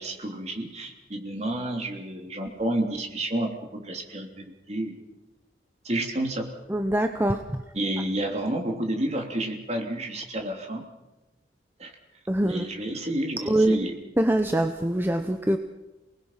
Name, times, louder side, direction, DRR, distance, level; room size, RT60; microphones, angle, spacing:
voice 1, 0.0-5.0 5.8-6.4 7.7-10.8 11.8-11.9 12.4-13.9, right 1 dB, 35° right, 2 dB, 3.1 m, -30 dB
voice 2, 6.7-7.6 12.3-12.7 13.4-13.9 14.2-15.6, right 1 dB, 10° right, 6 dB, 0.7 m, -24 dB
28.5 x 19.5 x 5.8 m, 1.1 s
head